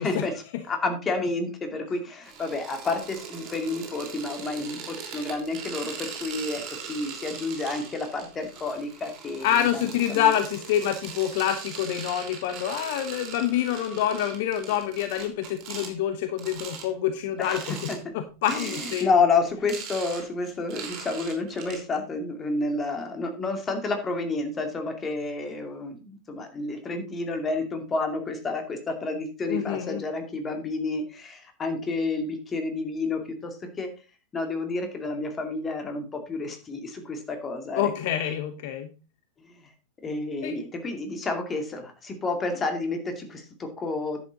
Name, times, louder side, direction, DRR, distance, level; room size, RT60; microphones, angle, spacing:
voice 1, 0.0-9.8 10.1-10.3 17.4-18.1 18.5-33.9 34.3-37.9 39.4-39.7 40.0-44.2, left 3 dB, 20° left, 5 dB, 2.3 m, -30 dB
sound 1, 2.2-15.9 16.4-16.9 17.4-18.0 18.4-19.1 19.4-21.8, right 6 dB, 40° right, 3.3 m, -40 dB
voice 2, 9.4-19.1 29.5-30.0 37.7-38.9 40.4-40.5, left 10 dB, 50° left, 9 dB, 0.9 m, -27 dB
10.5 x 8.1 x 3.9 m, 0.32 s
figure-of-eight pair, 90°, 0 cm